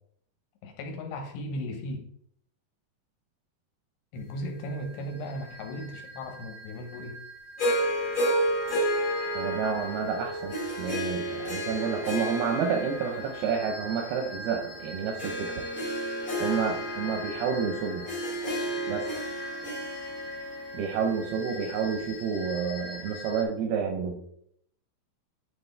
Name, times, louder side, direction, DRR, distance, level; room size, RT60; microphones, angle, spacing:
voice 1, 0.6-2.1 4.1-7.2, equal, 75° left, 3 dB, 2.9 m, -36 dB
sound 1, 4.2-23.4, equal, 55° left, 2.4 m, -44 dB
Harp, 7.6-22.0, equal, 40° left, 1.2 m, -32 dB
voice 2, 9.3-15.6 16.4-18.1 18.9-19.2 20.7-24.2, right 6 dB, 80° right, 3 dB, 2.3 m, -30 dB
9.9 x 4.3 x 3.3 m, 0.68 s
omnidirectional pair, 5.2 m